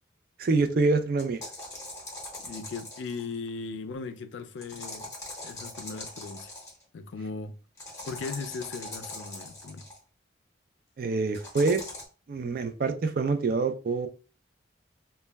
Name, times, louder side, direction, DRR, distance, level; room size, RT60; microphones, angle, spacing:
voice 1, 0.4-1.4 11.0-11.8 12.3-14.1, right 3 dB, 50° right, 0.3 m, -26 dB
sound 1, 1.2-3.3 4.6-6.8 7.8-10.0 11.3-12.0, left 2 dB, 15° left, 0.8 m, -41 dB
voice 2, 2.4-5.1 5.4-6.5 6.9-7.6 8.0-9.9, left 4 dB, 75° left, 0.4 m, -38 dB
2.1 x 2.1 x 3.3 m
head